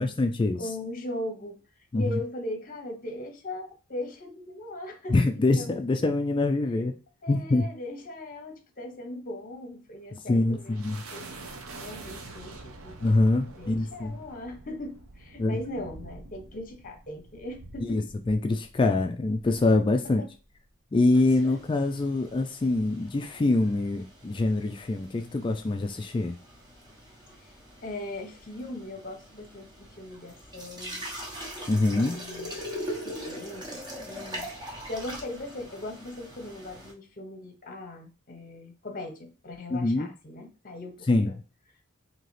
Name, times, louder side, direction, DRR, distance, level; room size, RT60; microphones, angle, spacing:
voice 1, 0.0-0.6 1.9-2.2 5.1-7.0 7.3-7.7 10.3-11.0 13.0-14.2 15.4-15.6 17.9-20.2 20.9-26.3 31.7-32.2 39.7-40.1 41.1-41.3, left 2 dB, 25° left, 5 dB, 0.3 m, -24 dB
voice 2, 0.6-1.6 1.9-5.7 7.2-10.7 11.1-11.4 11.6-13.0 13.6-18.0 20.2-20.3 27.4-27.5 27.8-31.1 32.0-32.5 33.0-41.3, left 1 dB, 40° left, 6 dB, 0.8 m, -39 dB
sound 1, 9.9-20.7, right 2 dB, 75° right, 0.7 m, -47 dB
sound 2, 21.1-36.9, equal, 20° right, 1.0 m, -42 dB
3.9 x 2.8 x 3.2 m, 0.33 s
head